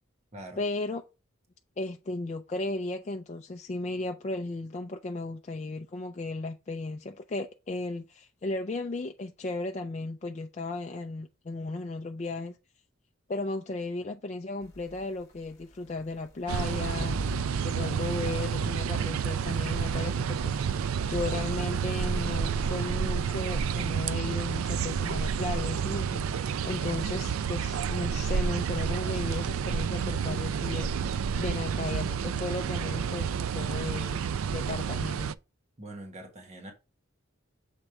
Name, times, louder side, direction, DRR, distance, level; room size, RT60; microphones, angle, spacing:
voice 1, 0.6-1.0 1.8-12.5 13.3-17.2 17.6-30.9 31.4-34.2 34.5-35.3, left 2 dB, 35° left, 0.4 m, -35 dB
sound 1, 14.6-22.8, left 1 dB, 15° left, 1.3 m, -46 dB
sound 2, 16.5-35.4, right 7 dB, 85° right, 0.4 m, -30 dB
voice 2, 35.8-36.7, right 1 dB, 35° right, 1.4 m, -44 dB
7.2 x 3.3 x 4.7 m
head